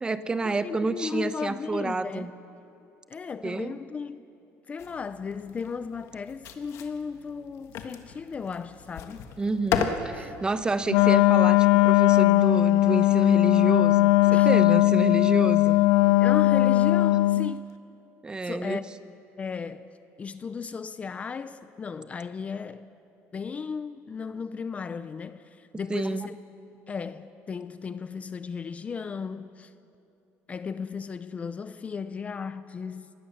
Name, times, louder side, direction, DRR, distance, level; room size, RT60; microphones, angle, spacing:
voice 1, 0.0-2.3 3.4-3.7 9.4-15.8 18.2-18.8 25.9-26.3, right 3 dB, 15° right, 0.8 m, -29 dB
voice 2, 0.6-2.3 3.1-4.3 4.7-9.3 10.2-10.3 14.3-14.5 16.2-17.6 18.4-18.9 19.4-19.9 20.2-22.9 23.3-26.4 26.9-29.7 30.5-33.1, left 5 dB, 25° left, 0.5 m, -35 dB
sound 1, 4.8-11.2, left 7 dB, 60° left, 1.5 m, -35 dB
Wind instrument woodwind instrument, 10.9-17.5, left 17 dB, 90° left, 0.5 m, -19 dB
25.5 x 19.5 x 7.1 m
cardioid pair, 145°, 5 cm